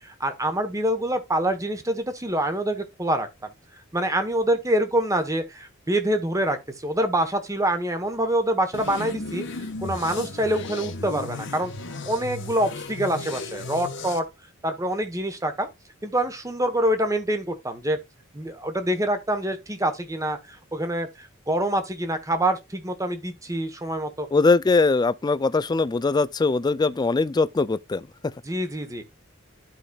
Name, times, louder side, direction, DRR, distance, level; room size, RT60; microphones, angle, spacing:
voice 1, 0.0-3.5 3.9-11.7 12.1-14.2 14.6-15.7 16.0-18.0 18.3-24.3 28.4-29.0, right 1 dB, 15° right, 1.2 m, -26 dB
sound 1, 8.7-14.2, left 3 dB, 65° left, 1.2 m, -35 dB
voice 2, 24.3-28.3, left 3 dB, 20° left, 0.3 m, -21 dB
12.0 x 5.0 x 2.4 m
head